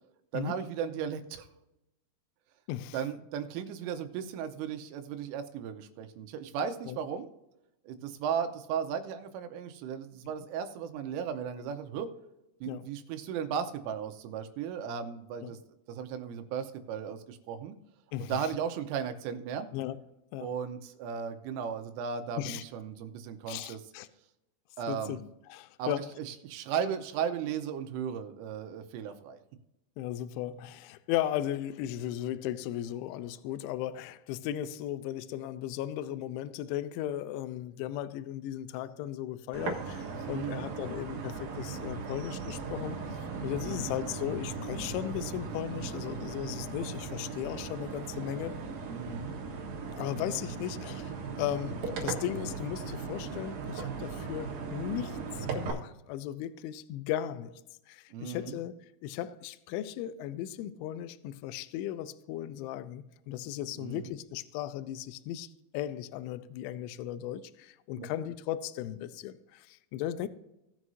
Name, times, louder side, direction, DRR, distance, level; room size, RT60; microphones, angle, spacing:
voice 1, 0.3-1.5 2.9-7.3 7.9-12.1 12.6-15.6 15.9-17.8 18.2-19.7 20.4-23.8 24.8-25.2 25.8-29.4 40.2-40.7 43.6-43.9 48.9-49.3 58.1-58.6 63.8-64.1 68.0-68.1, right 7 dB, 85° right, 3.2 m, -36 dB
voice 2, 2.7-3.0 6.9-7.0 12.7-12.9 15.4-15.5 18.1-18.5 19.7-20.0 20.3-20.5 22.4-22.6 23.5-24.1 24.9-25.2 25.5-26.2 30.0-43.0 43.4-48.6 50.0-57.5 57.9-58.7 59.0-65.5 65.7-70.3, left 12 dB, 90° left, 2.7 m, -36 dB
sound 1, 39.5-55.7, right 4 dB, 65° right, 2.6 m, -38 dB
18.5 x 6.2 x 2.7 m
omnidirectional pair, 6.0 m